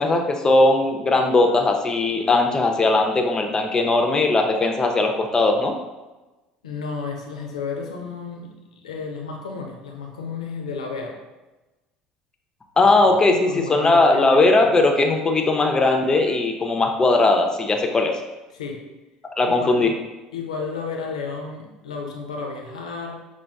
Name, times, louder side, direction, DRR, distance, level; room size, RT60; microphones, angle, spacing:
voice 1, 0.0-5.7 12.8-18.2 19.4-19.9, left 2 dB, 20° left, 3 dB, 0.5 m, -19 dB
voice 2, 6.6-11.2 12.8-12.9 13.3-14.4 14.7-14.8 18.5-18.8 19.4-20.0 20.3-23.2, left 4 dB, 75° left, 1 dB, 0.5 m, -32 dB
5.6 x 2.2 x 2.3 m, 1.1 s
figure-of-eight pair, 60°, 4 cm